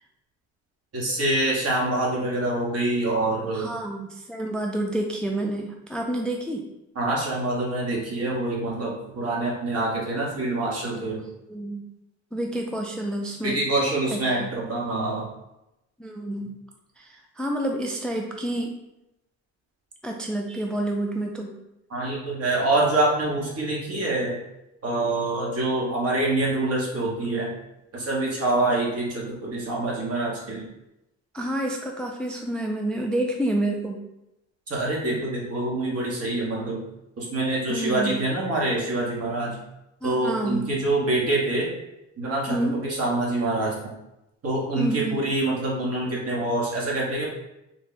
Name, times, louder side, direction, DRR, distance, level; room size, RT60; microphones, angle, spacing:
voice 1, 0.9-3.7 6.9-11.2 13.4-15.3 21.9-24.4 24.8-27.6 27.9-30.7 34.7-36.8 37.2-39.6 40.0-41.7 42.2-42.6 42.8-43.9 44.4-47.3, right 2 dB, 55° right, -3 dB, 1.4 m, -25 dB
voice 2, 3.5-6.7 11.5-11.9 12.3-13.6 14.1-14.5 16.0-16.5 17.0-18.7 20.0-21.5 31.3-34.0 37.7-38.2 40.0-40.7 42.5-42.8 44.7-45.3, right 1 dB, 5° left, 2 dB, 0.3 m, -29 dB
3.6 x 2.2 x 3.9 m, 0.90 s
cardioid pair, 90°, 30 cm